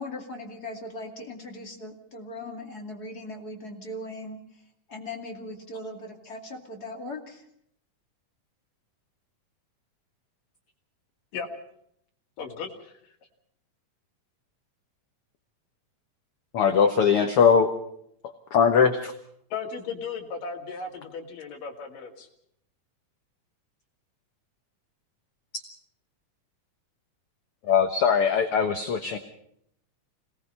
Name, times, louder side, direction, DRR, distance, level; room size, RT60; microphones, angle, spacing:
voice 1, 0.0-4.6 4.9-7.4, left 1 dB, 30° left, 2 dB, 2.6 m, -39 dB
voice 2, 12.4-13.1 19.5-22.3, left 5 dB, 80° left, 0 dB, 4.0 m, -36 dB
voice 3, 16.5-17.7 18.5-19.1 25.5-25.6 27.6-29.2, left 6 dB, 60° left, 6 dB, 1.7 m, -21 dB
26.5 x 19.0 x 5.5 m, 0.72 s
omnidirectional pair, 3.8 m